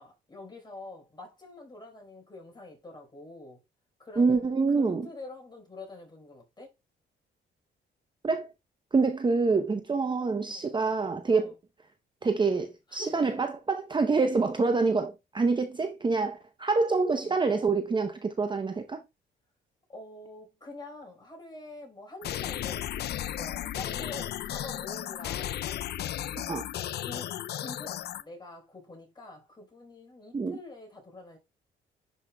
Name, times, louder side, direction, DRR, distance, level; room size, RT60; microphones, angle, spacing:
voice 1, 0.0-3.6 4.0-6.7 10.5-10.7 11.3-11.5 12.9-13.4 17.2-17.4 19.9-25.6 27.0-31.4, left 2 dB, 20° left, 4.3 m, -46 dB
voice 2, 4.2-5.1 8.2-8.5 8.9-11.5 12.2-19.0 26.3-26.6 30.3-30.6, right 4 dB, 25° right, 0.7 m, -26 dB
sound 1, 22.2-28.2, left 12 dB, 55° left, 0.4 m, -34 dB
10.5 x 5.2 x 2.2 m
cardioid pair, 90°, 20 cm